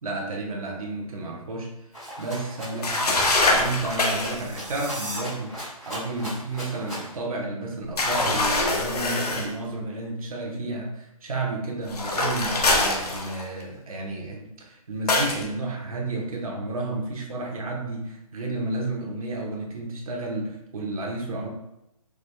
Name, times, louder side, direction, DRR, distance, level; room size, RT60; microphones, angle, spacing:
voice 1, 0.0-1.7 2.2-5.5 5.8-21.5, right 2 dB, 65° right, 0 dB, 1.1 m, -31 dB
Rattle (instrument), 1.9-7.2, equal, ahead, 0.4 m, -38 dB
sound 1, 2.8-4.4 8.0-9.5 11.9-13.6 15.1-15.4, left 2 dB, 85° left, 0.9 m, -24 dB
sound 2, 4.1-5.2, right 1 dB, 15° right, 0.8 m, -37 dB
4.9 x 3.3 x 2.2 m, 0.84 s
hypercardioid pair, 175°, 20 cm